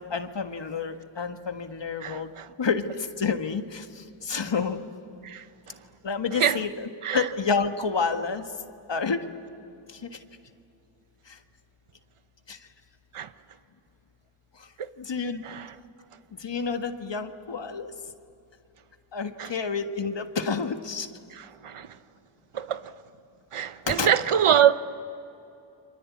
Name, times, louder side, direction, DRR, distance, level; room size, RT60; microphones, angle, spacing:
voice 1, 0.0-2.3 2.6-4.8 6.0-8.4 8.9-9.2 9.9-10.1 11.3-11.4 12.5-12.6 15.0-15.4 16.4-17.9 19.1-21.1 23.9-24.1, left 5 dB, 60° left, 1.7 m, -29 dB
voice 2, 2.0-2.5 5.2-5.4 6.4-6.6 7.0-7.3 13.1-13.3 14.8-14.9 15.4-15.7 19.4-19.5 21.3-21.9 22.5-22.9 23.5-24.7, right 9 dB, 80° right, 1.0 m, -24 dB
28.5 x 24.5 x 8.5 m
cardioid pair, 50°, 50 cm